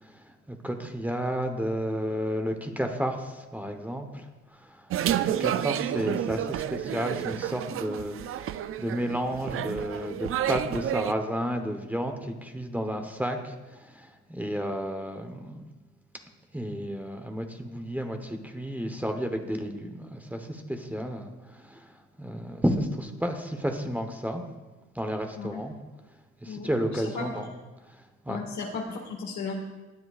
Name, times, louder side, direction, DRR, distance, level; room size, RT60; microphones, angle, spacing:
voice 1, 0.5-4.3 4.7-4.8 5.1-15.6 16.5-21.3 21.6-21.9 22.2-24.4 24.9-25.7 26.4-27.5 28.3-28.4, equal, 5° right, 5 dB, 0.9 m, -32 dB
sound 1, 4.9-11.1, right 11 dB, 50° right, 0.4 m, -30 dB
voice 2, 26.4-27.4 28.3-29.5, left 4 dB, 70° left, 0 dB, 2.0 m, -36 dB
22.5 x 7.7 x 2.4 m, 1.2 s
cardioid pair, 105°, 29 cm